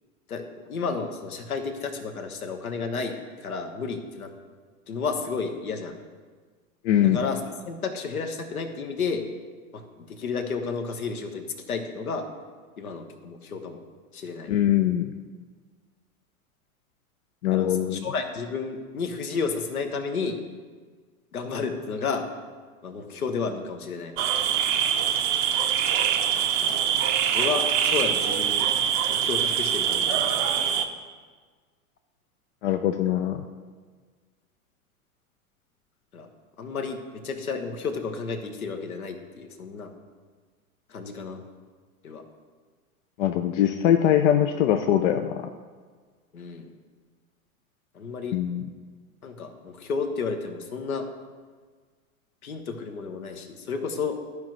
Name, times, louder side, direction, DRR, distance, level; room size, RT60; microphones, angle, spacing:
voice 1, 0.3-3.1 3.4-4.3 4.9-6.0 7.0-9.3 9.7-12.3 12.8-13.8 14.1-14.5 17.5-20.4 21.3-22.3 22.8-24.1 26.6-26.8 27.3-28.7 29.1-30.6 36.1-36.3 36.6-39.9 40.9-41.4 42.0-42.2 46.3-46.7 47.9-48.4 49.2-51.1 52.4-54.2, left 5 dB, 75° left, 6 dB, 1.1 m, -32 dB
voice 2, 6.8-7.2 14.5-15.1 17.4-18.1 32.6-33.5 43.2-45.5 48.3-48.6, left 10 dB, 55° left, 7 dB, 0.6 m, -22 dB
sound 1, 24.2-30.9, right 9 dB, 40° right, 0.7 m, -24 dB
14.0 x 4.7 x 3.0 m, 1.5 s
figure-of-eight pair, 90°, 43 cm